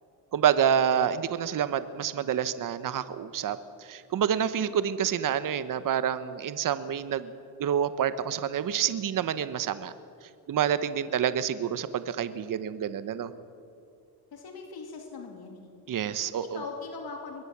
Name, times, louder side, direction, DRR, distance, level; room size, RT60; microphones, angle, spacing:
voice 1, 0.3-7.3 7.6-9.9 10.5-13.3 15.9-16.6, right 9 dB, 50° right, 13 dB, 1.0 m, -28 dB
voice 2, 14.3-15.7 16.4-17.4, left 4 dB, 60° left, 2 dB, 3.1 m, -40 dB
22.5 x 18.0 x 7.3 m, 2.6 s
cardioid pair, 105°, 41 cm